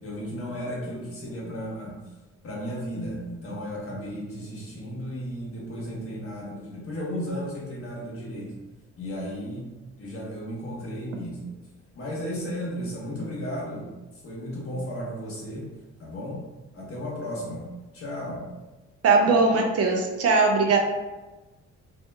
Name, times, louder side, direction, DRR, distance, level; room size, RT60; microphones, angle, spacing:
voice 1, 0.0-2.0 2.4-8.5 9.0-9.7 10.0-11.5 11.9-13.9 14.2-15.7 16.0-16.4 16.7-17.6 17.9-18.4, equal, 45° left, -5 dB, 1.1 m, -34 dB
voice 2, 19.0-20.8, right 4 dB, 55° right, 2 dB, 0.5 m, -20 dB
2.8 x 2.5 x 2.2 m, 1.1 s
cardioid pair, 90°, 30 cm